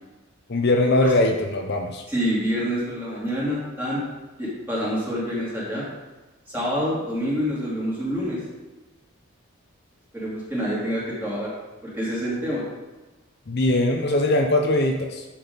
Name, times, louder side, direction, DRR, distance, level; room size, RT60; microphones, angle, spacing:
voice 1, 0.5-2.0 13.5-15.2, left 2 dB, 50° left, 2 dB, 0.6 m, -21 dB
voice 2, 2.1-4.0 4.4-5.9 6.5-8.4 10.1-11.5 11.8-12.6, equal, 10° right, -8 dB, 2.8 m, -27 dB
10.0 x 6.2 x 4.0 m, 1.1 s
head